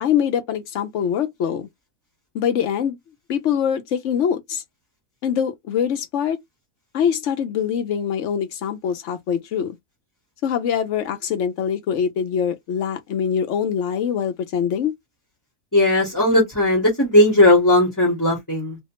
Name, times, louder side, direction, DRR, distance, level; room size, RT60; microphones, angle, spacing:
voice 1, 0.0-1.7 2.3-3.0 3.3-4.6 5.2-6.4 6.9-9.8 10.4-14.9, left 8 dB, 65° left, 0.8 m, -23 dB
voice 2, 15.7-18.8, left 1 dB, 15° left, 0.9 m, -17 dB
2.8 x 2.1 x 2.9 m
omnidirectional pair, 1.7 m